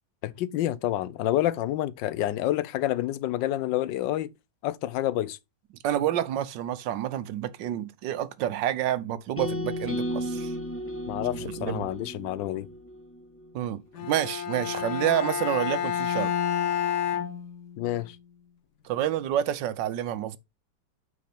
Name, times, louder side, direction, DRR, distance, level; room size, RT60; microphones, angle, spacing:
voice 1, 0.2-4.3 4.6-5.4 11.1-12.7 17.8-18.2, left 13 dB, 85° left, 1.3 m, -28 dB
voice 2, 5.8-10.5 11.3-11.9 13.5-16.3 18.8-20.4, right 11 dB, 80° right, 1.4 m, -29 dB
sound 1, 9.4-13.5, equal, 10° left, 1.0 m, -34 dB
Bowed string instrument, 13.9-18.1, left 9 dB, 65° left, 1.5 m, -29 dB
8.5 x 4.3 x 4.2 m
omnidirectional pair, 1.9 m